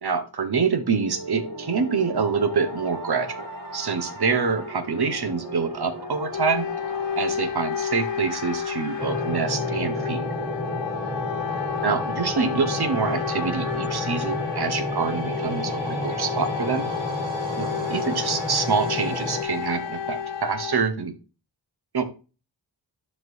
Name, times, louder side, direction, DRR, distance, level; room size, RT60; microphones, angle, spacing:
voice 1, 0.0-3.5 3.7-6.7 7.1-10.3 11.8-16.9 17.6-21.1 21.9-22.0, right 5 dB, 55° right, 8 dB, 1.3 m, -26 dB
sound 1, 0.7-20.5, right 1 dB, 70° right, 3.4 m, -38 dB
sound 2, 6.3-20.8, left 8 dB, 65° left, 0.6 m, -31 dB
sound 3, 9.0-19.4, left 1 dB, ahead, 0.8 m, -32 dB
12.0 x 4.4 x 2.7 m, 0.33 s
wide cardioid pair, 85°, 47 cm